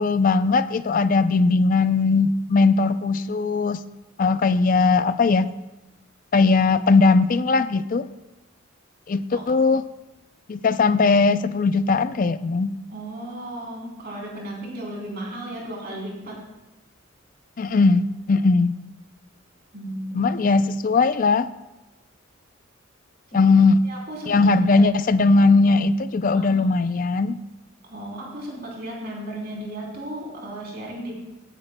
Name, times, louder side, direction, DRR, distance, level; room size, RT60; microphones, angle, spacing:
voice 1, 0.0-3.8 4.2-5.5 6.3-8.1 9.1-9.8 10.5-12.8 17.6-18.7 20.1-21.5 23.3-23.8 24.3-27.4, left 3 dB, 40° left, 13 dB, 0.4 m, -19 dB
voice 2, 12.9-16.4 19.7-20.2 23.3-23.5 23.8-24.4 24.7-24.8 26.3-26.6 27.8-31.2, right 1 dB, 50° right, -3 dB, 3.2 m, -35 dB
16.5 x 9.9 x 2.2 m, 1.0 s
head